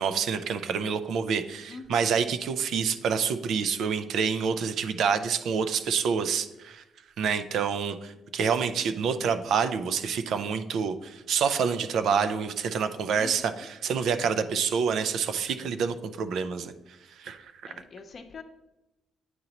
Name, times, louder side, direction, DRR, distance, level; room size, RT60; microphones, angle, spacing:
voice 1, 0.0-6.8 7.2-16.7 17.2-17.7, right 6 dB, 70° right, 10 dB, 0.4 m, -27 dB
voice 2, 13.1-13.4 17.7-18.4, left 4 dB, 50° left, 7 dB, 0.7 m, -43 dB
9.3 x 3.9 x 2.9 m, 0.99 s
cardioid pair, 90°, 0 cm